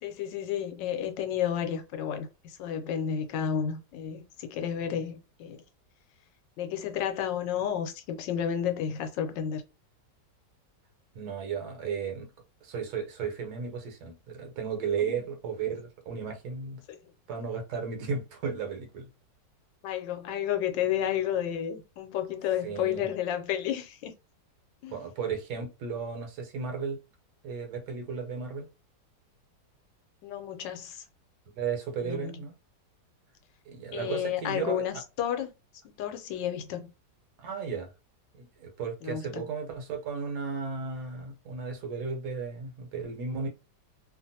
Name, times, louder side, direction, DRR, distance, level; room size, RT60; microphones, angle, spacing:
voice 1, 0.0-5.6 6.6-9.6 15.0-15.2 19.8-24.1 24.8-25.0 30.2-31.0 32.0-32.3 33.9-35.5 36.0-36.9 39.0-39.4, left 9 dB, 90° left, 1.3 m, -31 dB
voice 2, 11.1-12.3 12.6-16.8 17.3-19.1 22.6-23.0 24.9-27.0 27.4-28.7 31.5-32.5 33.7-34.8 37.4-37.9 38.3-43.5, right 6 dB, 65° right, 1.3 m, -34 dB
2.8 x 2.5 x 2.6 m
omnidirectional pair, 1.9 m